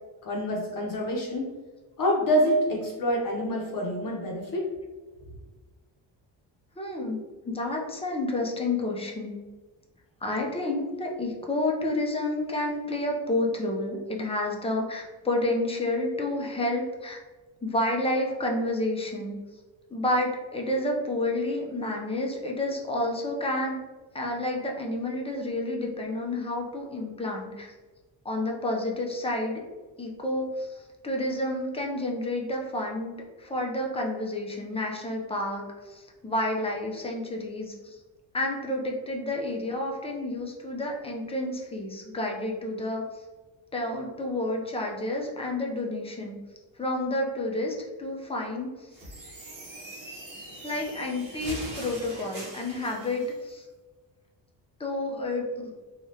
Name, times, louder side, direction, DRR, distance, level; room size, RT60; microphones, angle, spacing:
voice 1, 0.2-1.5 2.0-4.7, equal, 45° left, -1 dB, 0.7 m, -26 dB
voice 2, 6.8-9.4 10.2-17.2 17.6-19.4 19.9-23.8 24.1-27.7 28.2-29.6 30.0-38.0 38.3-43.2 43.7-46.4 46.8-48.9 50.6-53.7 54.8-55.7, left 1 dB, 15° left, 0 dB, 0.4 m, -30 dB
sound 1, 48.9-53.3, right 1 dB, 45° right, 1.0 m, -42 dB
3.1 x 2.3 x 2.7 m, 1.3 s
cardioid pair, 115°, 45 cm